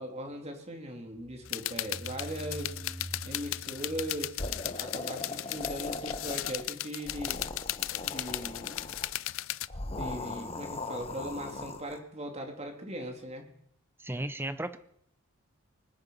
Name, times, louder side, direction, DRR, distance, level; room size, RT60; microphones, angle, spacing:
voice 1, 0.0-2.8 3.2-7.4 8.0-8.8 9.8-13.5, equal, 30° right, 3 dB, 3.0 m, -39 dB
sound 1, 1.2-5.8, right 1 dB, 10° left, 4.2 m, -45 dB
sound 2, 1.5-9.7, left 15 dB, 65° left, 0.5 m, -36 dB
sound 3, 4.4-6.7 7.0-9.1 9.7-12.0, left 2 dB, 25° left, 1.2 m, -39 dB
voice 2, 14.0-14.8, right 1 dB, 10° right, 12 dB, 0.8 m, -34 dB
24.5 x 8.8 x 5.6 m, 0.72 s
head